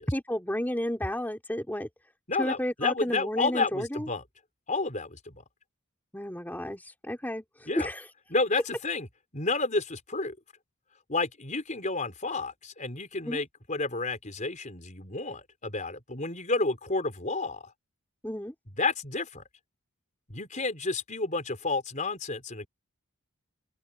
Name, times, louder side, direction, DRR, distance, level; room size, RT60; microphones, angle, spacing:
voice 1, 0.0-1.9 2.4-4.1 6.1-8.1 13.2-13.4 18.2-18.5, equal, 10° left, 3.0 m, -32 dB
voice 2, 2.3-4.2 4.7-5.4 7.7-7.9 8.3-9.1 9.3-10.4 11.1-17.6 18.8-19.4 20.3-22.7, left 3 dB, 35° left, 4.7 m, -30 dB
open air
head